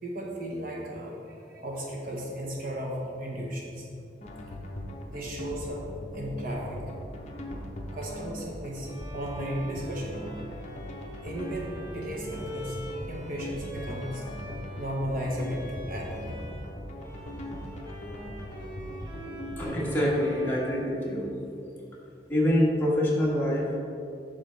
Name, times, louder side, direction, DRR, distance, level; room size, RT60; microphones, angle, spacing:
voice 1, 0.0-3.9 5.1-5.8 6.1-6.8 7.9-10.3 11.2-12.8 13.1-14.2 14.7-16.3, equal, 50° right, -2 dB, 1.0 m, -35 dB
sound 1, 4.2-19.6, left 1 dB, 40° left, 0.7 m, -40 dB
Bowed string instrument, 8.8-16.7 17.0-21.8, right 1 dB, 25° right, 1.0 m, -45 dB
voice 2, 19.6-21.3 22.3-23.8, equal, 10° left, -5 dB, 1.4 m, -25 dB
9.0 x 6.1 x 3.3 m, 2.6 s
head